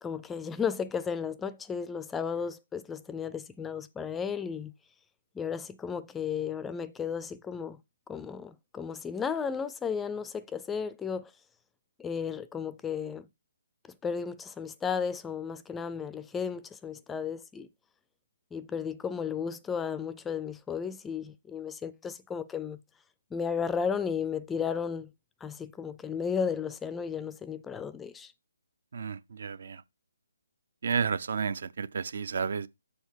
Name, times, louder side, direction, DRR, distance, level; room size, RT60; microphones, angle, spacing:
voice 1, 0.0-4.7 5.4-7.8 8.1-11.3 12.0-13.3 13.9-17.7 18.5-22.8 23.3-25.1 25.4-28.3, left 6 dB, 10° left, 0.3 m, -34 dB
voice 2, 28.9-29.8 30.8-32.7, right 6 dB, 60° right, 0.5 m, -31 dB
7.0 x 3.8 x 6.2 m
hypercardioid pair, 150°, 0 cm